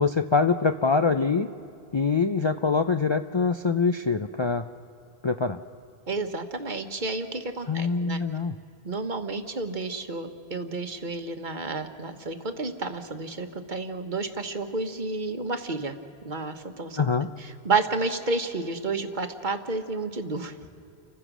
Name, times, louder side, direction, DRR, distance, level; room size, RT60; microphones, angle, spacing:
voice 1, 0.0-1.5 1.9-4.7 5.2-5.6 7.7-8.5 17.0-17.3, left 4 dB, 40° left, 8 dB, 0.4 m, -24 dB
voice 2, 6.1-8.2 8.8-16.0 16.2-17.1 17.4-20.8, right 3 dB, 50° right, 7 dB, 1.3 m, -31 dB
29.5 x 15.5 x 6.2 m, 2.7 s
omnidirectional pair, 1.1 m